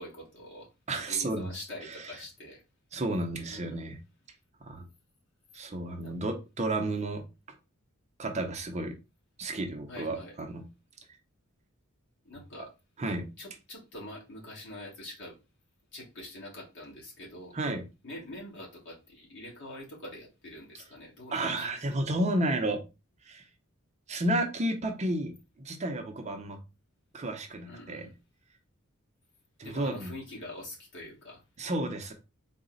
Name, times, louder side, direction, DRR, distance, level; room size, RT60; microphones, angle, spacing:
voice 1, 0.0-0.7 1.1-2.6 3.5-3.8 6.0-6.1 9.9-10.3 12.2-12.7 13.0-13.1 13.4-15.4 15.9-17.5 18.0-21.7 27.6-28.1 29.6-31.4, left 1 dB, 55° left, 1.6 m, -45 dB
voice 2, 0.9-1.5 1.8-2.1 2.9-4.0 4.6-4.8 5.5-7.2 8.2-8.9 9.4-10.6 13.0-13.3 17.5-17.8 21.3-22.8 23.2-23.4 24.1-26.6 27.1-28.1 29.6-30.1 31.6-32.1, right 1 dB, 35° right, 0.6 m, -32 dB
4.0 x 2.1 x 3.8 m
head